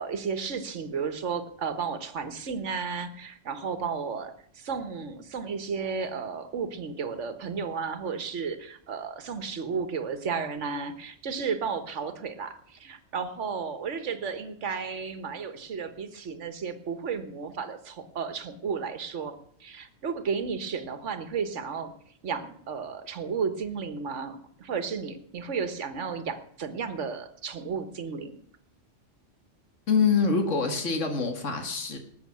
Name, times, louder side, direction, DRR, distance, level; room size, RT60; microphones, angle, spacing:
voice 1, 0.0-21.9 22.2-28.4, right 5 dB, 70° right, 10 dB, 1.6 m, -33 dB
voice 2, 29.9-32.0, left 5 dB, 70° left, 5 dB, 2.3 m, -25 dB
18.5 x 7.3 x 8.6 m, 0.65 s
omnidirectional pair, 1.3 m